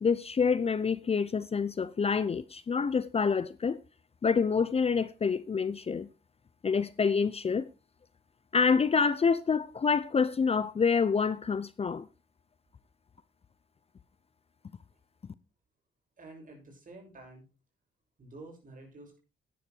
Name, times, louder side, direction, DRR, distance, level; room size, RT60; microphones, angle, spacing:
voice 1, 0.0-3.8 4.2-6.1 6.6-7.7 8.5-12.1, left 5 dB, 30° left, 0.7 m, -27 dB
voice 2, 16.2-17.4 18.2-19.2, right 2 dB, 40° right, 7.0 m, -49 dB
11.0 x 10.0 x 4.6 m
cardioid pair, 90°, 20 cm